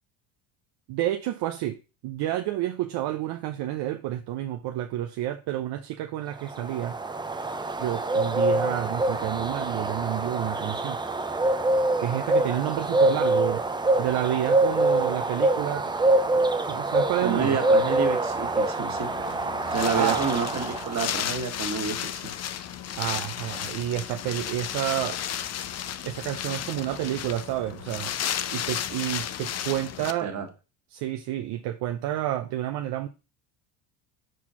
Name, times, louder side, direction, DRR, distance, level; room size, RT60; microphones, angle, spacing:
voice 1, 0.9-1.8 2.0-7.0 7.8-11.0 12.0-13.6 14.0-15.9 16.3-17.6 19.9-20.2 23.0-25.2 26.0-28.1 28.5-30.3 30.9-33.1, right 13 dB, 60° right, 0.7 m, -29 dB
sound 1, 6.5-21.1, right 2 dB, 10° right, 0.6 m, -25 dB
voice 2, 17.2-19.1 19.7-22.3 30.2-30.5, right 5 dB, 40° right, 1.9 m, -29 dB
Wind, 18.9-30.1, left 10 dB, 35° left, 0.6 m, -33 dB
4.6 x 4.4 x 5.7 m
supercardioid pair, 100°, 44 cm